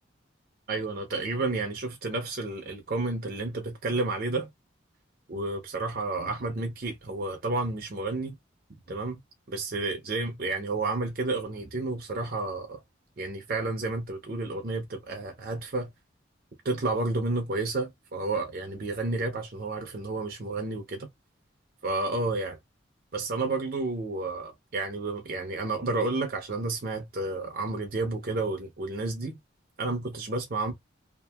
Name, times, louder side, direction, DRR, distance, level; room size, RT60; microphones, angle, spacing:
voice 1, 0.7-4.5 5.3-8.3 8.9-9.2 9.5-12.8 13.2-15.9 16.6-21.1 21.8-22.6 23.1-29.4 29.8-30.7, right 2 dB, 50° right, 0.5 m, -31 dB
2.8 x 2.5 x 2.2 m
head